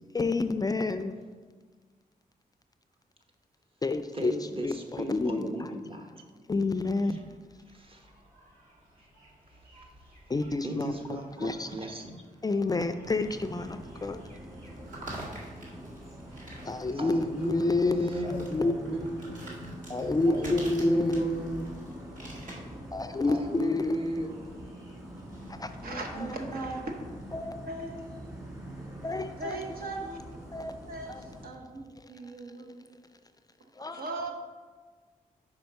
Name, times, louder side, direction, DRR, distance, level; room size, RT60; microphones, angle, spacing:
voice 1, 0.1-1.1 3.8-5.7 6.5-7.2 10.3-11.8 12.4-14.2 16.7-19.0 19.9-21.3 22.9-24.0 25.5-26.3 27.3-27.6 29.0-29.7 30.5-30.7 31.1-31.2 31.9-32.0 33.8-34.3, left 3 dB, 25° left, 9 dB, 0.3 m, -29 dB
voice 2, 4.1-6.2 7.1-7.2 7.7-8.1 10.6-12.2 16.9-19.7 20.2-21.7 21.9-22.2 23.3-24.3, right 1 dB, 35° right, 2 dB, 1.0 m, -35 dB
sound 1, 6.5-25.5, right 1 dB, 55° right, 1.8 m, -50 dB
sound 2, 13.0-31.5, equal, 20° right, 1.9 m, -44 dB
voice 3, 25.8-26.9 27.6-28.3 29.4-30.2 30.9-32.9 33.6-34.3, right 2 dB, 75° right, 2 dB, 0.9 m, -38 dB
5.2 x 5.0 x 4.6 m, 1.4 s
cardioid pair, 70°, 15 cm